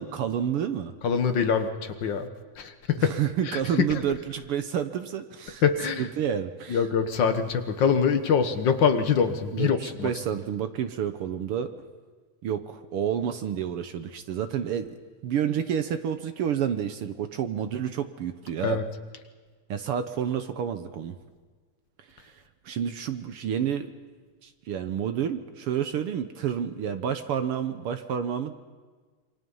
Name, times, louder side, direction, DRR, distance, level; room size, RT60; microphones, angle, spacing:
voice 1, 0.0-0.9 3.0-5.6 6.0-6.9 9.5-11.7 12.4-14.9 15.2-18.8 19.7-21.2 22.2-22.3 22.6-23.9 24.4-28.6, right 9 dB, 65° right, 9 dB, 1.4 m, -29 dB
voice 2, 1.0-2.3 2.6-3.1 3.4-3.9 5.6-6.1 6.7-10.1 18.6-18.8, left 6 dB, 50° left, 7 dB, 1.4 m, -24 dB
27.5 x 24.5 x 5.6 m, 1.5 s
omnidirectional pair, 3.4 m